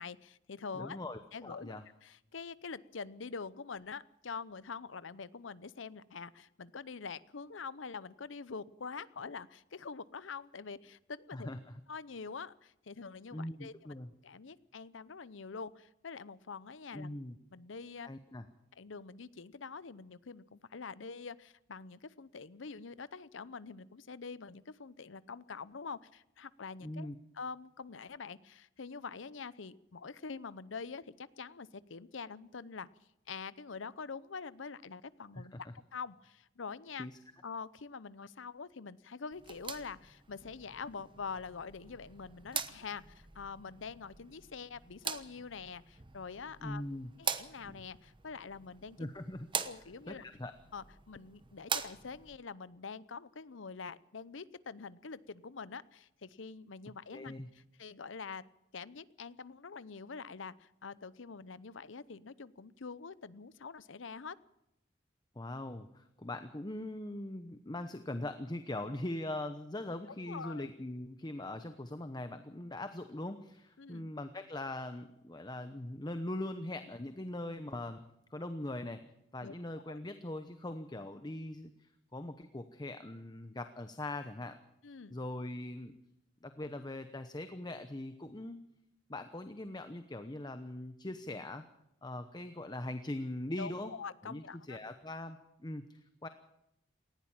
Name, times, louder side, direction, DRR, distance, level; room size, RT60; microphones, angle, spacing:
voice 1, 0.0-1.0 1.3-11.5 11.9-13.7 14.2-17.1 17.5-18.1 18.8-27.1 27.3-32.9 33.3-35.5 35.9-37.1 37.4-46.8 47.2-49.1 49.6-50.2 50.7-58.4 58.7-64.4 70.3-70.7 73.8-74.1 79.4-79.5 79.9-80.0 84.8-85.2 93.6-94.8, left 5 dB, 75° left, 17 dB, 0.7 m, -45 dB
voice 2, 0.7-1.8 11.3-11.8 13.3-14.1 16.9-17.4 18.0-18.5 26.8-27.2 35.3-35.7 37.0-37.2 46.6-47.1 49.0-49.5 50.1-50.5 57.1-57.5 65.4-78.1 78.3-79.0 79.3-84.6 85.1-85.9 86.4-88.6 89.1-91.6 92.0-93.9 94.2-96.3, left 1 dB, 20° left, 9 dB, 0.9 m, -41 dB
sound 1, 39.3-52.4, right 7 dB, 25° right, 1.0 m, -43 dB
19.0 x 15.5 x 8.9 m, 0.84 s
head